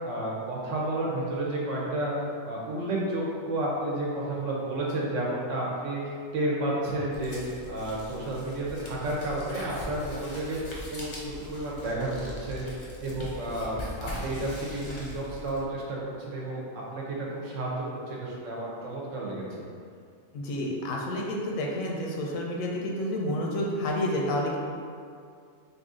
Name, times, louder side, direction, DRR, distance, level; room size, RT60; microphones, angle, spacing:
voice 1, 0.0-2.1 2.4-10.6 10.9-11.1 11.4-12.6 13.0-19.4, right 1 dB, 75° right, -4 dB, 1.1 m, -31 dB
sound 1, 7.1-15.6, left 1 dB, 40° left, 0.4 m, -41 dB
voice 2, 20.3-24.6, left 1 dB, 90° left, -1 dB, 1.0 m, -29 dB
3.1 x 2.7 x 3.6 m, 2.3 s
omnidirectional pair, 1.4 m